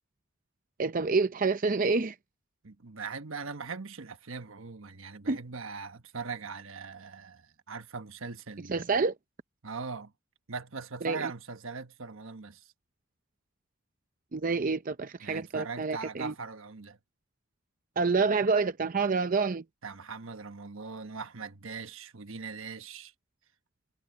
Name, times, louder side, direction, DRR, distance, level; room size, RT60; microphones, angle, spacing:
voice 1, 0.8-2.2 5.3-5.4 8.7-9.1 11.0-11.2 14.3-16.3 18.0-19.6, right 4 dB, 40° right, 0.6 m, -27 dB
voice 2, 2.6-9.0 9.6-10.1 10.5-12.6 15.2-17.0 19.8-23.1, right 4 dB, 80° right, 1.3 m, -40 dB
head